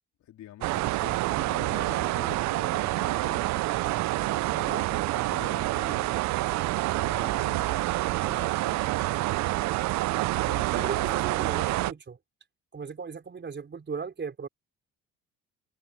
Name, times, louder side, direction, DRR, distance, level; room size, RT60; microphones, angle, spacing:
voice 1, 0.2-6.2 6.6-7.9 8.2-8.9 10.3-11.5, left 12 dB, 70° left, 3.5 m, -46 dB
sound 1, 0.6-11.9, right 18 dB, 65° right, 0.4 m, -27 dB
voice 2, 4.5-4.9 10.7-12.2 12.7-14.5, right 5 dB, 35° right, 4.4 m, -37 dB
open air
cardioid pair, 85°, 30 cm